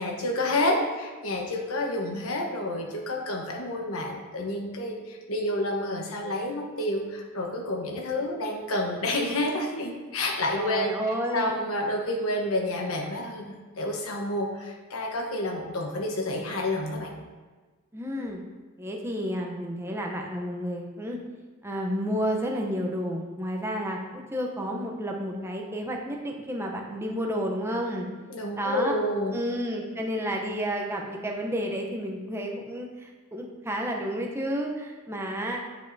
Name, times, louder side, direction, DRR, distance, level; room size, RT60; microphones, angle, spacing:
voice 1, 0.0-11.0 11.3-17.1 28.3-29.3, left 1 dB, 90° left, 2 dB, 1.0 m, -29 dB
voice 2, 10.5-11.5 17.9-18.5 18.8-21.2 21.6-28.1 28.5-28.9 29.3-35.6, equal, 10° right, 0 dB, 0.7 m, -31 dB
9.0 x 5.4 x 2.7 m, 1.4 s
head